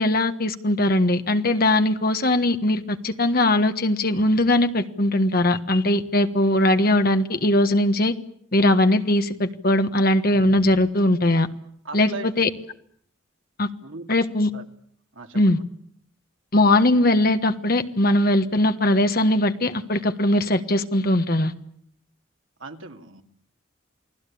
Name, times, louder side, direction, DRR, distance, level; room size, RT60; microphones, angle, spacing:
voice 1, 0.0-8.1 8.5-11.5 11.9-12.5 13.6-13.7 14.1-14.5 15.3-15.6 16.5-21.5, left 1 dB, 45° left, 8 dB, 1.4 m, -20 dB
voice 2, 11.8-12.5 13.8-14.1 14.5-14.6 15.1-15.6 22.6-23.2, right 3 dB, 75° right, 4 dB, 2.4 m, -38 dB
29.0 x 19.0 x 8.6 m, 0.67 s
head